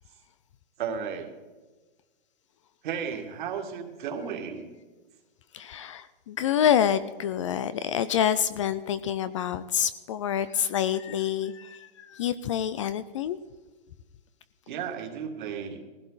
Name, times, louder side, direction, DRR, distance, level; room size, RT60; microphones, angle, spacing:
voice 1, 0.8-1.3 2.8-4.7 14.7-15.8, right 7 dB, 55° right, 4 dB, 2.2 m, -34 dB
voice 2, 5.5-13.4, left 9 dB, 35° left, 15 dB, 0.4 m, -27 dB
17.0 x 15.5 x 4.0 m, 1.3 s
hypercardioid pair, 155°, 29 cm